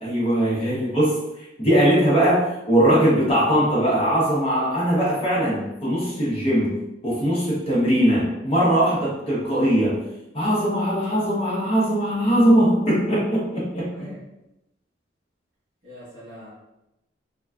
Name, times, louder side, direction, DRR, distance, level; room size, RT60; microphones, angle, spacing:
voice 1, 0.0-1.1 1.6-6.7 7.0-10.0 10.3-13.9, equal, 30° left, -7 dB, 0.8 m, -20 dB
voice 2, 15.8-16.5, equal, 55° right, -8 dB, 1.4 m, -42 dB
3.1 x 2.3 x 2.4 m, 0.90 s
head